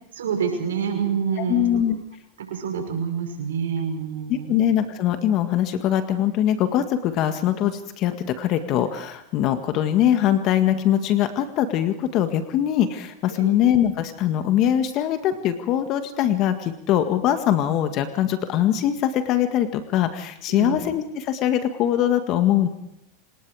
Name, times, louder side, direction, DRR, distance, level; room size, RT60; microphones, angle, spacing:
voice 1, 0.2-1.8 2.4-4.5 13.3-13.6 20.5-20.8, right 7 dB, 85° right, 4 dB, 6.0 m, -27 dB
voice 2, 1.4-2.0 4.3-22.7, left 11 dB, 50° left, 8 dB, 1.9 m, -22 dB
29.0 x 19.0 x 5.0 m, 0.78 s
hypercardioid pair, 105°, 0 cm